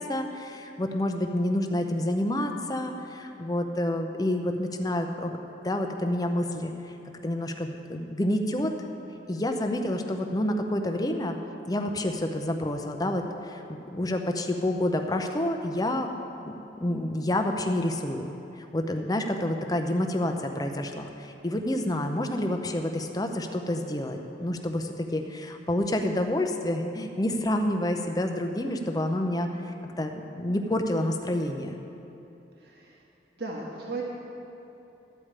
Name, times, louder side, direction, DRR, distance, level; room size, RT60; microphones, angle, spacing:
voice 1, 0.0-5.4 5.6-6.7 7.2-8.7 9.3-11.4 11.7-16.1 16.8-29.5 30.0-31.8, left 1 dB, 20° left, 4 dB, 0.6 m, -28 dB
voice 2, 32.6-33.0 33.4-34.0, right 3 dB, 60° right, -2 dB, 1.3 m, -37 dB
13.0 x 4.9 x 8.7 m, 2.9 s
head